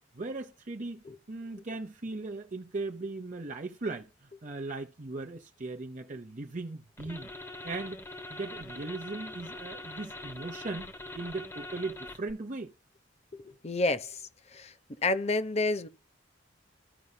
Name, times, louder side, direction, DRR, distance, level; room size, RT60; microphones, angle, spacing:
voice 1, 0.1-7.3 7.6-8.0 8.3-10.9 11.1-12.7, right 3 dB, 40° right, 0.7 m, -38 dB
sound 1, 7.0-12.3, left 2 dB, 15° left, 1.1 m, -43 dB
voice 2, 13.3-14.7 15.0-15.9, left 2 dB, 35° left, 0.8 m, -30 dB
15.0 x 5.4 x 2.2 m
head